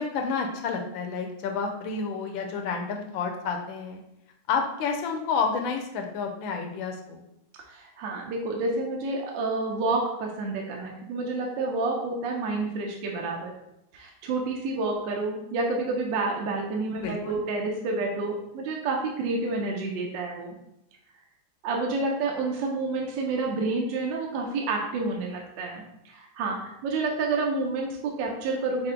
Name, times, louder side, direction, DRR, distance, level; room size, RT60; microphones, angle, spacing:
voice 1, 0.0-4.0 4.5-7.2 16.9-17.4, left 5 dB, 75° left, 3 dB, 1.2 m, -30 dB
voice 2, 7.7-13.5 13.9-20.6 21.6-28.9, right 3 dB, 70° right, 0 dB, 1.2 m, -29 dB
5.6 x 2.1 x 3.7 m, 0.82 s
omnidirectional pair, 2.3 m